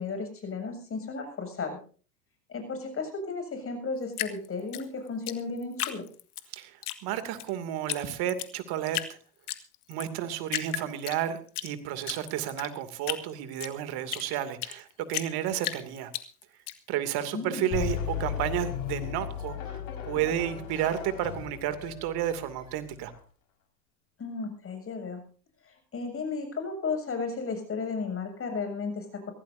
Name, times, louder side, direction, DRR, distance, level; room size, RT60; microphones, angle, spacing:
voice 1, 0.0-1.8 2.5-6.1 17.3-17.7 24.2-25.2 25.6-29.3, left 4 dB, 30° left, 6 dB, 7.3 m, -34 dB
Drip, 4.1-6.5 6.8-7.5 7.9-8.0 8.3-9.1 9.5-10.1 10.5-11.7 12.0-14.8 15.1-16.7, left 14 dB, 75° left, 1.9 m, -34 dB
voice 2, 7.0-9.0 9.9-16.1 16.9-23.1, right 11 dB, 55° right, 10 dB, 2.7 m, -32 dB
sound 1, 17.7-23.2, left 8 dB, 50° left, 5.4 m, -36 dB
23.5 x 16.0 x 2.7 m, 0.40 s
hypercardioid pair, 95°, 46 cm